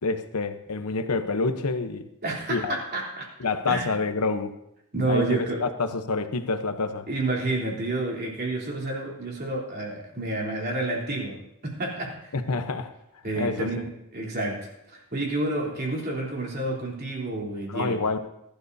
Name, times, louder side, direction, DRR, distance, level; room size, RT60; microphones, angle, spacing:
voice 1, 0.0-2.0 2.5-2.8 3.4-4.5 5.1-7.1 12.3-12.9 13.4-13.7 17.7-18.3, left 3 dB, 90° left, 8 dB, 1.0 m, -27 dB
voice 2, 2.2-3.3 3.7-3.9 4.9-5.7 7.1-12.3 13.2-18.0, right 2 dB, 45° right, -2 dB, 3.5 m, -29 dB
22.0 x 12.0 x 2.7 m, 0.84 s
head